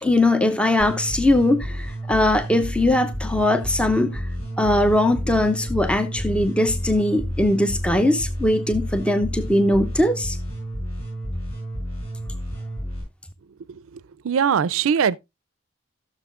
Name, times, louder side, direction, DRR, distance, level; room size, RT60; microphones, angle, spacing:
voice 1, 0.0-4.3 4.6-10.4, left 1 dB, 5° left, 0.4 m, -20 dB
sound 1, 0.8-13.0, equal, 30° left, 7.5 m, -30 dB
voice 2, 14.2-15.2, right 7 dB, 75° right, 0.4 m, -20 dB
17.0 x 6.4 x 2.4 m
head